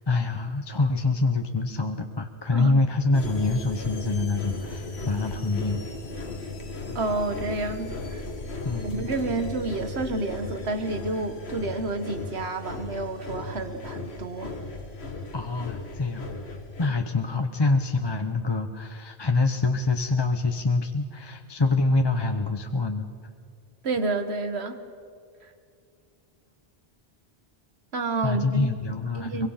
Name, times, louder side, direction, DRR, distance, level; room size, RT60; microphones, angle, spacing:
voice 1, 0.1-5.8 8.6-9.0 15.3-16.3 16.8-23.1 28.2-29.5, left 3 dB, 25° left, 6 dB, 0.8 m, -25 dB
sound 1, 3.1-16.9, left 3 dB, 85° left, 2.0 m, -36 dB
voice 2, 7.0-8.2 8.8-14.5 23.8-24.8 27.9-28.7 29.2-29.5, right 2 dB, 90° right, 9 dB, 1.7 m, -29 dB
23.5 x 22.5 x 5.7 m, 2.3 s
omnidirectional pair, 1.1 m